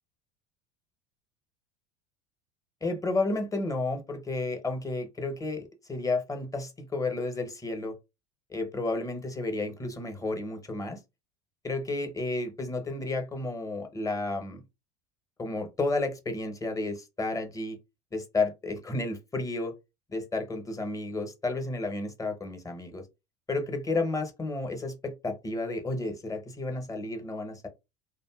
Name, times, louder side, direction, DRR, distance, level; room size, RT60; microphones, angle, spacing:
voice 1, 2.8-8.0 8.5-11.0 11.6-14.6 15.4-17.8 18.1-19.7 20.1-23.0 23.5-27.7, left 2 dB, 15° left, 0.8 m, -32 dB
2.7 x 2.5 x 2.3 m
hypercardioid pair, 75°, 20 cm